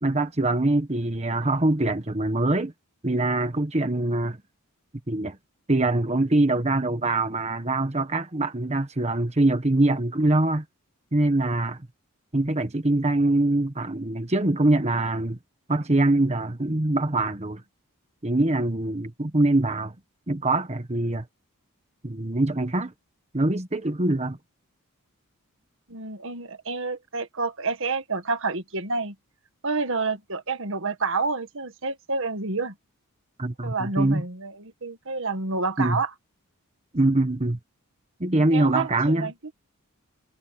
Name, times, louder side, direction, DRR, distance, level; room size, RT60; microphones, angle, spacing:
voice 1, 0.0-2.7 3.0-4.4 5.1-5.4 5.7-10.6 11.1-11.8 12.3-15.4 15.7-17.6 18.2-19.9 20.3-21.2 22.0-22.9 23.3-24.4 33.4-34.2 35.8-36.0 36.9-37.6 38.2-39.3, right 2 dB, 30° right, 1.4 m, -23 dB
voice 2, 25.9-29.1 29.6-32.7 33.6-36.1 38.4-39.3, right 3 dB, 60° right, 1.6 m, -29 dB
head